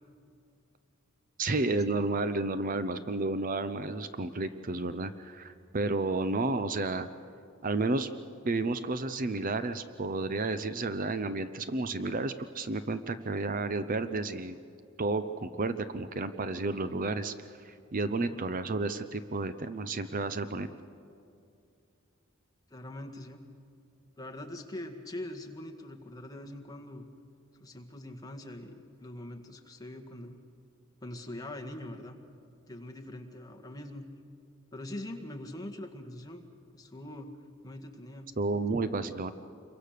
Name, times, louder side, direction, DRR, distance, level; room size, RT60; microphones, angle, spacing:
voice 1, 1.4-7.1 7.6-8.1 8.4-14.6 15.0-17.3 17.6-20.7 38.4-39.3, right 3 dB, 40° right, 11 dB, 0.7 m, -31 dB
voice 2, 22.7-23.4 24.2-27.0 27.6-28.7 29.0-30.4 31.0-32.2 32.7-34.0 34.7-36.4 36.7-37.3 37.6-38.3, left 1 dB, 20° left, 4 dB, 1.8 m, -43 dB
28.0 x 23.0 x 6.7 m, 2.5 s
head